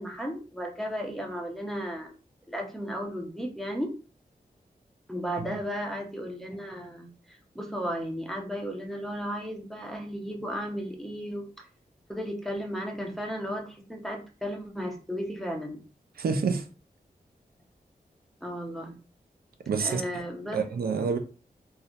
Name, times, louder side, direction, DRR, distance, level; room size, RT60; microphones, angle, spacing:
voice 1, 0.0-2.1 2.5-4.0 5.1-11.7 12.1-15.8 18.4-19.0 19.8-20.6, equal, ahead, 0.4 m, -34 dB
voice 2, 16.2-16.6 19.7-20.0 20.5-21.2, right 5 dB, 75° right, 0.4 m, -27 dB
2.3 x 2.0 x 2.8 m
wide cardioid pair, 115°, 16 cm